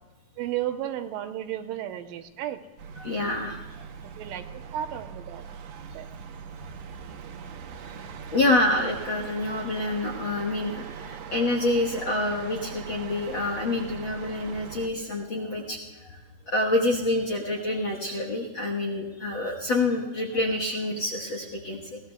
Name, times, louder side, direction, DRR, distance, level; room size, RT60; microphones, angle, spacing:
voice 1, 0.4-2.6 4.2-5.4 5.9-6.1, right 12 dB, 85° right, 7 dB, 2.5 m, -33 dB
sound 1, 2.8-14.9, right 6 dB, 70° right, 1.6 m, -41 dB
voice 2, 3.0-3.6 8.3-16.2 16.5-22.0, left 2 dB, 55° left, -1 dB, 1.4 m, -27 dB
22.0 x 17.0 x 2.3 m, 1.3 s
omnidirectional pair, 3.9 m